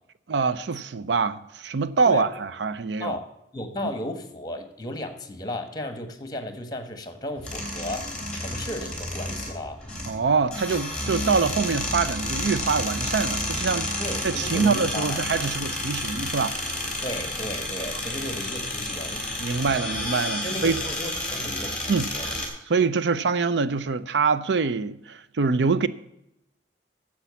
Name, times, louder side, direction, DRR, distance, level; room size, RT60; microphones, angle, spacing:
voice 1, 0.3-3.2 3.8-3.9 10.1-13.9 14.2-16.6 19.4-20.8 21.9-22.1 22.7-25.9, right 5 dB, 75° right, 0.5 m, -24 dB
voice 2, 3.5-8.1 8.4-9.8 14.0-15.2 17.0-19.2 20.4-22.3, left 1 dB, 20° left, 1.4 m, -34 dB
sound 1, 7.4-22.5, left 1 dB, 5° left, 3.2 m, -31 dB
10.0 x 7.5 x 6.9 m
head